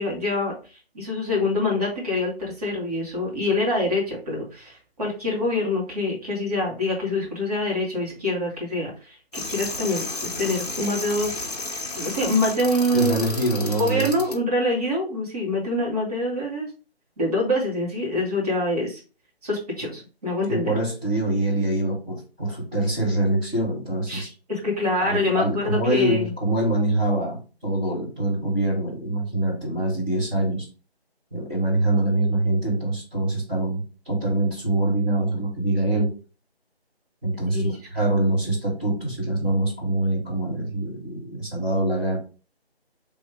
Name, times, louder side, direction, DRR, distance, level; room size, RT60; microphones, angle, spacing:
voice 1, 0.0-11.5 12.0-13.2 13.8-16.7 17.2-19.0 19.4-20.7 24.1-26.3 37.5-37.8, left 1 dB, 35° right, -4 dB, 2.1 m, -25 dB
sound 1, 9.3-14.4, left 2 dB, 40° left, 0.9 m, -32 dB
voice 2, 12.9-14.1 20.5-24.3 25.0-30.7 31.3-36.1 37.2-42.2, right 1 dB, 5° right, -10 dB, 1.1 m, -24 dB
3.4 x 3.2 x 4.8 m, 0.34 s
figure-of-eight pair, 160°, 32 cm